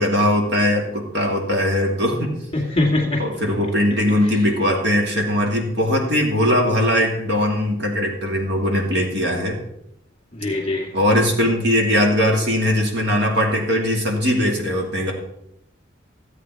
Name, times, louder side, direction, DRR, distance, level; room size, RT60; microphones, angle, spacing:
voice 1, 0.0-2.3 3.2-9.6 10.9-15.1, left 1 dB, 60° right, 0 dB, 2.5 m, -20 dB
voice 2, 2.5-3.2 10.3-10.9, left 2 dB, 30° left, 1 dB, 2.2 m, -21 dB
14.5 x 8.2 x 4.7 m, 0.81 s
head